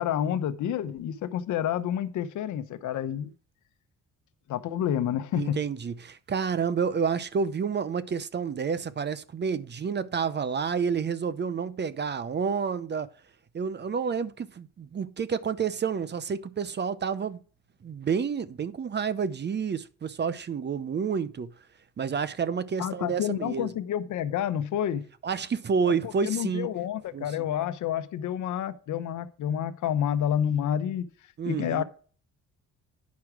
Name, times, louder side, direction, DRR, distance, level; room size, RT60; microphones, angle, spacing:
voice 1, 0.0-3.3 4.5-5.6 22.8-25.1 25.9-31.1 31.5-31.8, left 10 dB, 75° left, 0.9 m, -29 dB
voice 2, 5.3-13.1 13.5-17.4 17.8-21.5 22.0-23.7 25.2-26.7 27.1-27.4 31.4-31.8, right 6 dB, 35° right, 0.7 m, -29 dB
9.5 x 5.9 x 4.8 m
cardioid pair, 90°, 30 cm